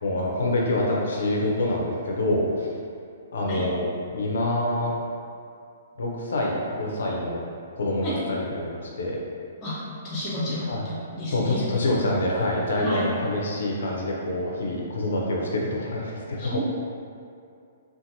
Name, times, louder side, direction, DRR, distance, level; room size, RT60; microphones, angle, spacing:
voice 1, 0.0-2.7 3.3-4.9 6.0-7.4 7.8-8.7 9.0-9.2 10.7-10.8 11.3-16.6, left 1 dB, 65° left, -2 dB, 0.5 m, -26 dB
voice 2, 10.0-11.7 12.8-13.1 16.4-16.6, left 1 dB, 30° left, -8 dB, 1.0 m, -31 dB
2.6 x 2.5 x 2.6 m, 2.4 s
figure-of-eight pair, 120°, 0 cm